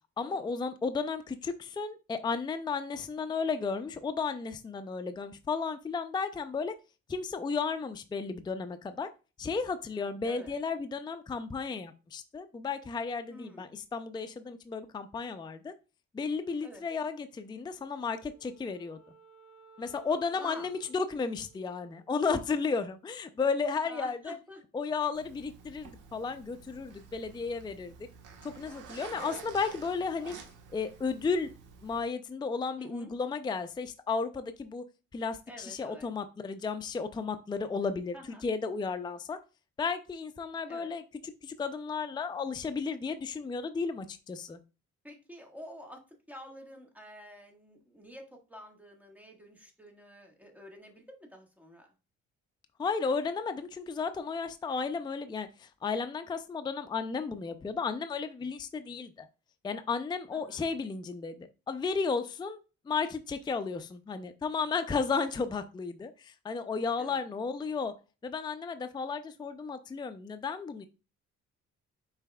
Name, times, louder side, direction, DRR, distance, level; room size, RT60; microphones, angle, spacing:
voice 1, 0.2-6.7 7.1-9.1 9.4-15.7 16.1-19.0 19.8-24.4 24.7-27.9 28.4-30.4 30.7-31.5 31.8-34.8 35.1-38.2 38.4-39.4 39.8-41.0 41.4-44.6 52.8-59.3 59.6-67.9 68.2-70.9, left 5 dB, 15° left, 10 dB, 0.4 m, -33 dB
voice 2, 9.9-10.5 13.3-13.7 16.6-16.9 20.4-20.7 23.9-24.6 32.8-33.1 35.5-36.1 38.1-38.4 40.7-40.9 45.0-51.9 60.3-60.6 67.0-67.2, equal, 5° right, 1 dB, 1.5 m, -49 dB
Wind instrument woodwind instrument, 18.0-22.5, right 5 dB, 50° left, 1.8 m, -58 dB
Zipper (clothing), 25.1-32.0, right 6 dB, 85° right, 1.3 m, -50 dB
5.5 x 4.1 x 2.3 m, 0.30 s
cardioid pair, 90°, 30 cm